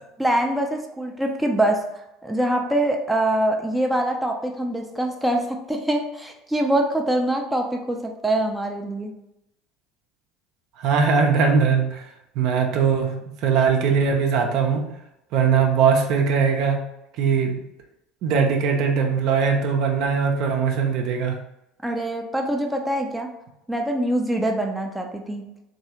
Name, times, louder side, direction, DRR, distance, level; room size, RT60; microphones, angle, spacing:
voice 1, 0.2-1.8 2.2-9.1 21.8-23.3 23.7-25.5, right 1 dB, 5° right, 2 dB, 0.5 m, -24 dB
voice 2, 10.8-12.0 12.4-14.9 15.3-16.8 17.2-17.6 18.2-21.4, right 6 dB, 60° right, 2 dB, 0.6 m, -20 dB
3.1 x 2.7 x 2.8 m, 0.87 s
hypercardioid pair, 70°, 0 cm